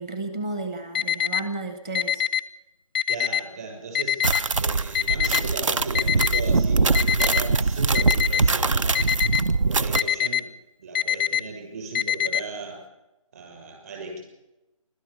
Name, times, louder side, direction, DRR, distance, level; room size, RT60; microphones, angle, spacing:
voice 1, 0.0-2.2, right 2 dB, 10° right, 8 dB, 1.0 m, -32 dB
Alarm, 0.9-1.4 1.9-2.4 2.9-3.4 3.9-4.4 4.9-5.4 5.9-6.4 6.9-7.4 7.9-8.4 8.9-9.4 9.9-10.4 10.9-11.4 11.9-12.4, left 11 dB, 20° left, 0.6 m, -23 dB
voice 2, 3.1-4.2 4.6-9.1 9.6-10.5 10.8-12.8 13.3-14.2, right 3 dB, 30° right, 2 dB, 6.6 m, -36 dB
sound 1, 4.2-10.0, right 4 dB, 60° right, 1.0 m, -22 dB
29.5 x 13.0 x 7.1 m, 0.99 s
hypercardioid pair, 175°, 18 cm